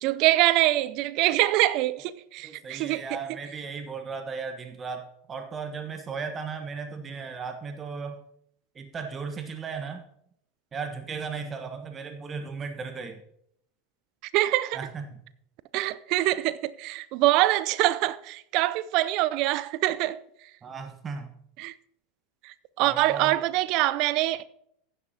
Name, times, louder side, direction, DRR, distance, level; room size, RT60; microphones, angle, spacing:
voice 1, 0.0-3.0 14.3-14.8 15.7-20.2 21.6-21.7 22.4-24.4, right 17 dB, 55° right, 0.5 m, -24 dB
voice 2, 2.4-8.2 8.7-10.1 10.7-13.2 14.7-15.2 20.6-21.4 22.8-23.4, right 5 dB, 25° right, 1.3 m, -36 dB
15.5 x 10.5 x 2.9 m
hypercardioid pair, 85°, 0 cm